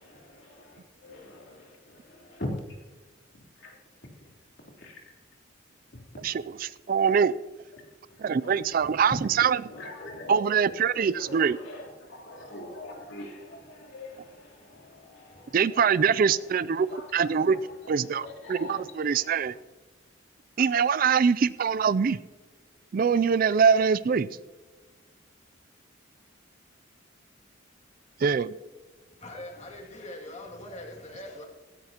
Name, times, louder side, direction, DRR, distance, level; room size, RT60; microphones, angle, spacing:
voice 1, 0.0-2.8 3.3-3.8 4.8-5.1 5.9-6.2 7.0-7.2 7.7-7.8 8.4-9.0 9.4-19.5, left 1 dB, 60° left, 3.5 m, -43 dB
voice 2, 6.2-7.3 8.2-9.6 10.3-11.6 15.5-17.6 17.9-19.5 20.6-22.2 22.9-24.3 28.2-28.5, right 6 dB, 45° right, 0.3 m, -23 dB
voice 3, 29.2-31.5, left 1 dB, 35° left, 2.4 m, -42 dB
17.0 x 16.0 x 2.9 m
head